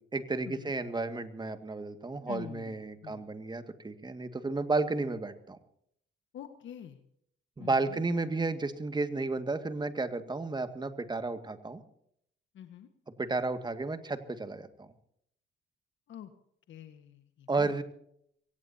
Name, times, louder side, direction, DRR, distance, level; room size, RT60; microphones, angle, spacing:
voice 1, 0.1-5.6 7.6-11.8 13.2-14.9 17.5-17.8, right 3 dB, 20° right, 8 dB, 2.0 m, -32 dB
voice 2, 2.3-2.7 3.0-3.2 6.3-7.0 7.6-8.0 12.5-12.9 16.1-16.3 16.7-17.7, left 10 dB, 75° left, 7 dB, 1.6 m, -46 dB
23.5 x 18.0 x 2.9 m, 0.70 s
cardioid pair, 90°, 20 cm